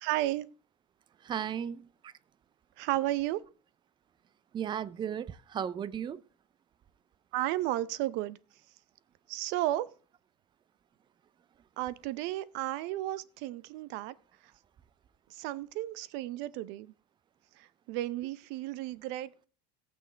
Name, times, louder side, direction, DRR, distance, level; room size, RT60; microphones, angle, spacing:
voice 1, 0.0-0.5 2.8-3.4 7.3-8.4 9.3-9.9 11.8-14.1 15.3-16.9 17.6-19.5, right 15 dB, 60° right, 0.7 m, -33 dB
voice 2, 1.2-1.9 4.5-6.2, right 8 dB, 20° right, 0.5 m, -35 dB
18.0 x 6.3 x 3.4 m
supercardioid pair, 125°, 21 cm